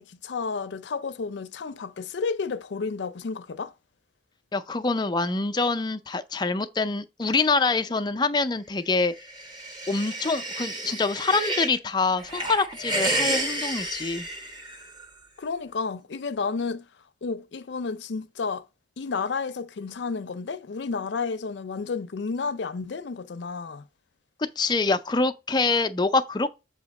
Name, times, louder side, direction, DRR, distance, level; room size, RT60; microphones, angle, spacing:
voice 1, 0.0-3.7 15.4-16.9 17.2-18.6 19.0-23.9, left 4 dB, 80° left, 0.5 m, -31 dB
voice 2, 4.5-9.1 9.9-14.3 24.6-26.5, left 3 dB, 25° left, 0.4 m, -25 dB
sound 1, 9.1-11.8 12.2-15.0, right 1 dB, 25° right, 1.0 m, -31 dB
7.1 x 2.8 x 5.2 m
head